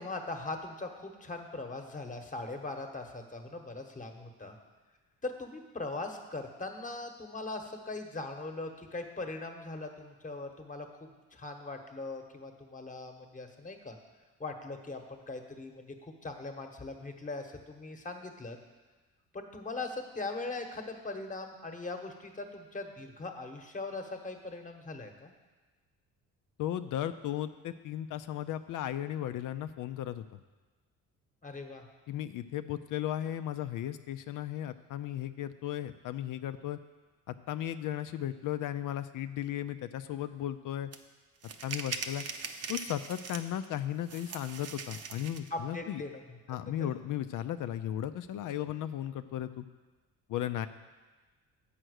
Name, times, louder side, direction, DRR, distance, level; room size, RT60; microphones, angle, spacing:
voice 1, 0.0-4.6 5.2-14.0 14.4-18.6 19.3-25.3 31.4-31.8 45.5-46.2 46.8-47.0, left 3 dB, 25° left, 5 dB, 1.1 m, -40 dB
voice 2, 26.6-30.4 32.1-36.8 37.3-40.9 41.6-42.3 42.7-46.0 46.5-49.7 50.3-50.7, left 11 dB, 65° left, 10 dB, 0.5 m, -35 dB
Money counter, 40.9-41.0 41.4-43.7 44.1-45.5, right 5 dB, 45° right, 0.7 m, -41 dB
7.7 x 5.8 x 6.4 m, 1.3 s
cardioid pair, 85°, 34 cm